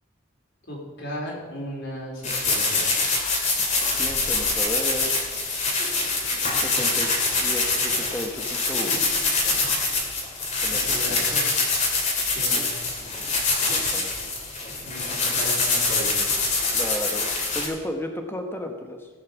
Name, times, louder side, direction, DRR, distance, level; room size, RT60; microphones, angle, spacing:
voice 1, 0.7-2.8 10.7-11.5 12.3-12.7 14.8-16.2, equal, 55° left, -3 dB, 4.2 m, -35 dB
sound 1, 2.2-17.6, left 3 dB, 35° left, 2.7 m, -24 dB
voice 2, 4.0-5.1 6.5-9.1 10.6-11.3 12.6-12.7 13.2-13.3 13.6-14.1 16.7-17.3 17.5-19.1, left 1 dB, 10° left, 4 dB, 1.1 m, -34 dB
17.0 x 6.4 x 7.2 m, 1.3 s
head